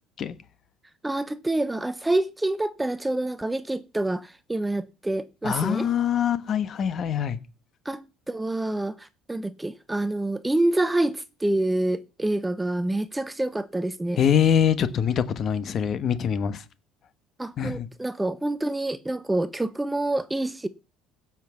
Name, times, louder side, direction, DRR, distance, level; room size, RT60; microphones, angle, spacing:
voice 1, 1.0-5.9 7.8-14.2 17.4-20.7, right 2 dB, 10° right, 0.6 m, -27 dB
voice 2, 5.4-7.4 14.2-16.6 17.6-17.9, left 8 dB, 45° left, 1.2 m, -24 dB
16.0 x 6.0 x 7.1 m
cardioid pair, 115°, 0 cm